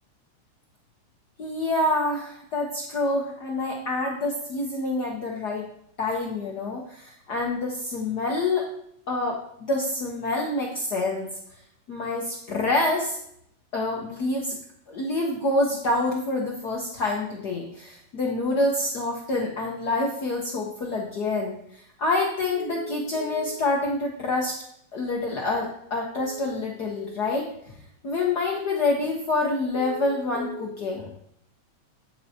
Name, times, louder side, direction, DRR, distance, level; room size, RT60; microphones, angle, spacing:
voice 1, 1.4-5.7 6.0-8.7 9.1-11.3 11.9-13.2 13.7-14.6 14.9-21.5 22.0-24.6 24.9-27.8 28.0-31.1, left 2 dB, 80° left, -1 dB, 0.9 m, -27 dB
8.9 x 8.6 x 2.8 m, 0.70 s
omnidirectional pair, 3.3 m